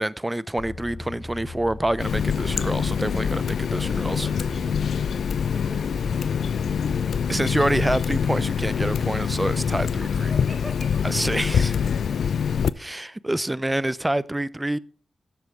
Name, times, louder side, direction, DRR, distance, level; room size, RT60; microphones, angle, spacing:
voice 1, 0.0-4.3 7.3-10.3 11.0-11.7 12.8-14.8, right 1 dB, 15° right, 0.5 m, -27 dB
sound 1, 0.6-10.1, left 3 dB, 30° left, 3.0 m, -38 dB
Water tap faucet, 2.0-12.7, left 7 dB, 85° left, 0.4 m, -25 dB
voice 2, 3.7-4.8 5.5-6.0 10.3-11.0, equal, ahead, 4.2 m, -40 dB
12.0 x 6.7 x 4.6 m
cardioid pair, 55°, 0 cm